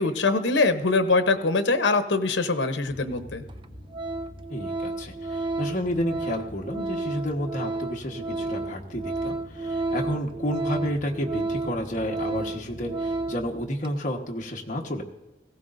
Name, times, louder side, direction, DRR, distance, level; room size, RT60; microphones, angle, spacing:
voice 1, 0.0-3.4, left 3 dB, 90° left, 9 dB, 0.8 m, -23 dB
sound 1, 2.9-13.6, equal, 5° left, 4.2 m, -46 dB
Organ, 2.9-3.0 3.5-3.7 3.9-13.5 13.8-14.0, right 3 dB, 25° right, 0.4 m, -32 dB
voice 2, 4.5-15.0, equal, 45° left, 0 dB, 1.3 m, -31 dB
18.0 x 15.5 x 2.6 m, 1.0 s
head